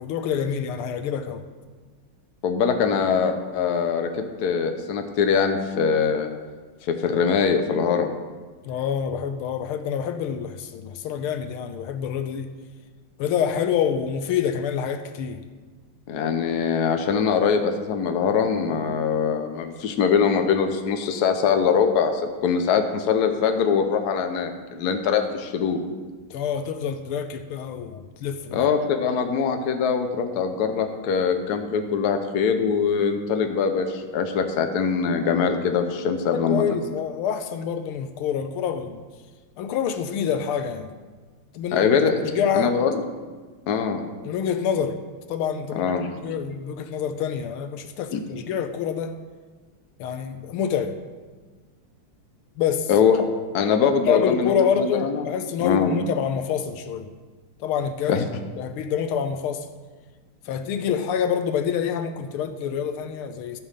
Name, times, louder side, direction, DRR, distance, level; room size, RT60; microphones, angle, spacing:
voice 1, 0.0-1.4 8.6-12.5 13.2-15.4 26.3-28.7 36.3-39.0 39.6-40.9 41.5-42.7 44.2-45.0 45.3-45.9 46.2-49.2 50.0-51.0 52.6-52.9 54.0-57.1 57.6-58.3 58.6-59.7 60.5-63.6, left 7 dB, 85° left, 9 dB, 1.6 m, -27 dB
voice 2, 2.4-4.1 4.4-6.3 6.8-8.1 16.1-25.8 28.5-36.6 41.7-42.1 42.5-43.0 43.7-44.0 45.7-46.1 48.1-48.2 52.9-53.2 53.5-55.2 55.6-56.0 58.1-58.2, left 6 dB, 55° left, 6 dB, 1.3 m, -22 dB
14.0 x 5.5 x 6.6 m, 1.4 s
omnidirectional pair, 2.3 m